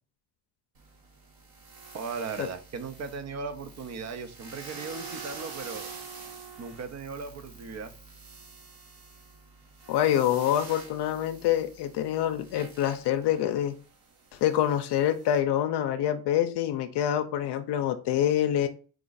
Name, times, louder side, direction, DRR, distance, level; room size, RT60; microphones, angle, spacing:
sound 1, 0.8-15.4, right 5 dB, 55° right, 1.3 m, -46 dB
voice 1, 1.9-5.9 6.6-7.9, right 4 dB, 40° right, 11 dB, 0.7 m, -37 dB
voice 2, 9.9-13.8 14.3-18.7, left 11 dB, 70° left, 7 dB, 0.6 m, -26 dB
4.7 x 2.4 x 3.9 m, 0.38 s
cardioid pair, 100°, 42 cm